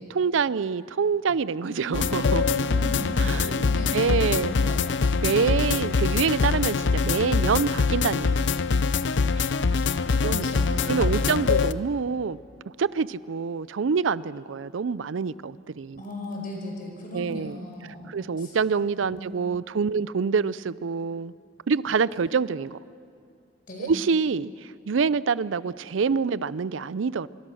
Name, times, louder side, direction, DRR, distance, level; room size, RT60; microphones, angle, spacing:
voice 1, 0.0-2.6 3.2-3.6 3.9-4.8 5.2-8.5 9.4-9.5 10.2-10.5 10.9-12.4 12.8-16.0 17.1-17.6 18.1-21.3 21.7-22.8 23.8-24.5 24.9-27.3, right 5 dB, 85° right, 19 dB, 0.5 m, -26 dB
voice 2, 1.6-5.0 9.4-11.3 16.0-18.5 19.1-19.3 23.7-23.9, equal, 45° left, 1 dB, 5.1 m, -38 dB
sound 1, 1.9-11.7, left 4 dB, 70° left, 0.6 m, -24 dB
25.0 x 23.5 x 6.4 m, 2.4 s
head